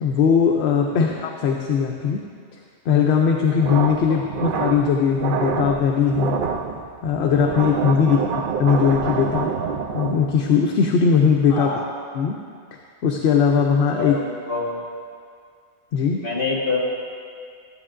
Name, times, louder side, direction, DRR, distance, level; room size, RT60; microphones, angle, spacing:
voice 1, 0.0-2.2 2.9-6.4 7.0-9.5 9.9-11.7 12.1-12.4 13.0-14.2 15.9-16.2, left 6 dB, 70° left, 1 dB, 0.8 m, -19 dB
voice 2, 0.8-1.1 4.1-4.2 8.0-8.4 11.5-11.8 14.0-14.8 16.2-16.8, left 4 dB, 50° left, -3 dB, 1.7 m, -27 dB
sound 1, 3.6-10.4, right 6 dB, 60° right, 0.6 m, -27 dB
13.5 x 8.4 x 2.5 m, 2.2 s
omnidirectional pair, 1.2 m